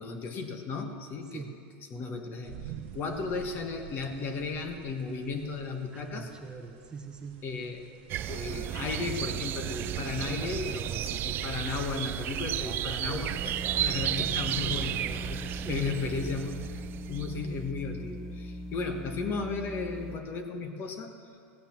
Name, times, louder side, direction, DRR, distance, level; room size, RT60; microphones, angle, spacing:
voice 1, 0.0-1.4 1.8-6.3 7.4-7.9 8.3-16.8 17.1-21.1, left 4 dB, 35° left, 6 dB, 1.3 m, -35 dB
sound 1, 2.4-13.6, right 10 dB, 60° right, 0.9 m, -50 dB
voice 2, 5.9-7.4 15.6-16.3, right 5 dB, 15° right, 3 dB, 0.9 m, -41 dB
sound 2, 8.1-17.5, right 12 dB, 35° right, 0.4 m, -33 dB
sound 3, 13.3-20.2, equal, 10° left, 1.1 m, -40 dB
16.0 x 9.1 x 7.3 m, 2.3 s
supercardioid pair, 145°, 6 cm